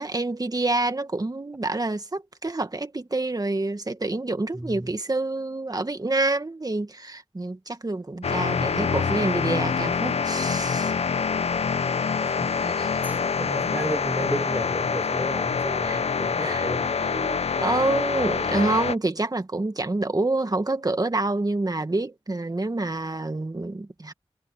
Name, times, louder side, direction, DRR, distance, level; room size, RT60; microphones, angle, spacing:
voice 1, 0.0-10.9 12.1-12.2 12.6-13.0 15.9-16.0 16.4-16.7 17.0-24.1, right 2 dB, 35° right, 2.0 m, -27 dB
voice 2, 4.5-4.9 8.5-8.9 12.2-17.0, right 1 dB, 15° right, 5.0 m, -34 dB
sound 1, 8.2-18.9, left 5 dB, 75° left, 0.6 m, -26 dB
wide cardioid pair, 55°, 11 cm